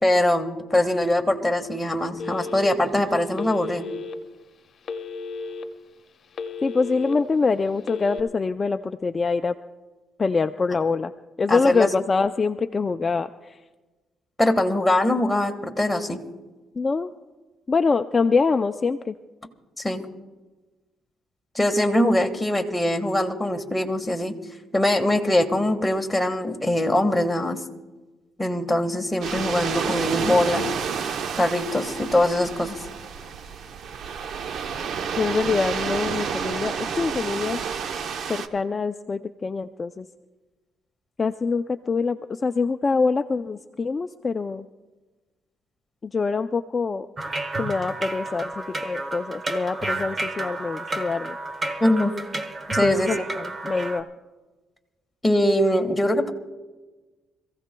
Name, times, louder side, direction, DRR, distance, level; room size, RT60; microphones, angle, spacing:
voice 1, 0.0-3.9 11.5-11.9 14.4-16.2 19.8-20.0 21.5-24.3 24.7-27.6 28.4-30.7 31.4-32.8 51.8-52.1 52.7-53.3 55.2-56.3, left 1 dB, 10° left, 3 dB, 1.5 m, -22 dB
Telephone, 2.2-2.9 3.4-4.1 4.8-5.6 6.1-7.1 7.8-8.2, left 4 dB, 55° left, 1.1 m, -34 dB
voice 2, 6.6-9.5 10.2-11.1 11.4-13.6 16.8-17.1 17.7-19.1 35.2-37.6 38.3-40.1 41.2-44.7 46.0-47.1 47.6-51.4 52.8-54.1, left 4 dB, 35° left, 9 dB, 0.4 m, -24 dB
sound 1, 29.2-38.5, right 6 dB, 65° right, 0.8 m, -30 dB
sound 2, 47.2-54.0, right 2 dB, 30° right, 1.1 m, -31 dB
26.5 x 15.5 x 2.3 m, 1.2 s
cardioid pair, 90°, 0 cm